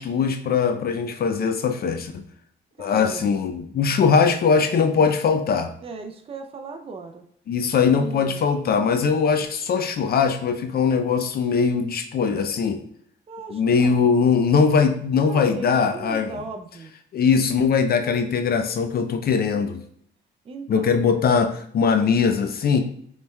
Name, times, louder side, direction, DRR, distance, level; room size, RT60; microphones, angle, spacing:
voice 1, 0.0-2.2 2.8-5.7 7.5-12.8 13.5-16.3 17.1-19.8 20.7-22.8, left 5 dB, 50° left, 7 dB, 0.4 m, -21 dB
voice 2, 2.8-3.3 5.8-7.2 7.7-8.4 13.3-14.0 15.2-16.9 20.4-20.9, right 4 dB, 30° right, 5 dB, 0.4 m, -37 dB
5.2 x 3.2 x 2.2 m, 0.64 s
cardioid pair, 90°, 20 cm